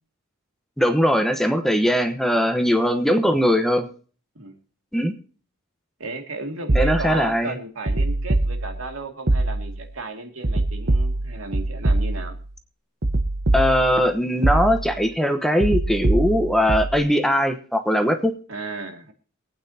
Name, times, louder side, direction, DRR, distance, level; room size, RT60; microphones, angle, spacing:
voice 1, 0.8-3.9 4.9-5.1 6.7-7.6 13.5-18.3, equal, ahead, 7 dB, 1.0 m, -20 dB
voice 2, 6.0-12.4 18.5-19.1, right 3 dB, 80° right, 4 dB, 2.3 m, -34 dB
sound 1, 6.7-7.3 7.9-8.9 9.3-9.9 10.4-12.5 13.0-14.1 14.4-15.1 15.6-17.0, right 2 dB, 55° right, 1.1 m, -23 dB
24.0 x 9.0 x 2.8 m, 0.41 s
head